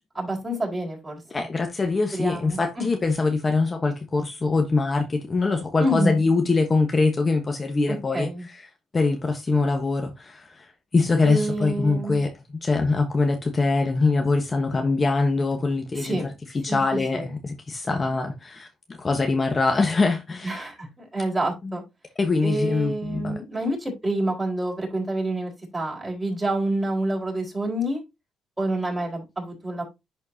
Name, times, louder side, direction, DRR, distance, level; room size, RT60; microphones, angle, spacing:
voice 1, 0.1-1.5 2.1-2.8 5.8-6.2 8.1-8.5 11.2-12.2 16.0-16.3 16.7-17.3 20.4-21.8 22.4-28.0 28.6-29.8, right 1 dB, 20° right, 4.3 m, -28 dB
voice 2, 1.3-8.7 8.9-12.3 12.6-16.2 16.6-20.7 21.6-21.8 22.2-23.4, left 3 dB, 30° left, 1.2 m, -23 dB
11.0 x 4.3 x 2.7 m
cardioid pair, 90°, 0 cm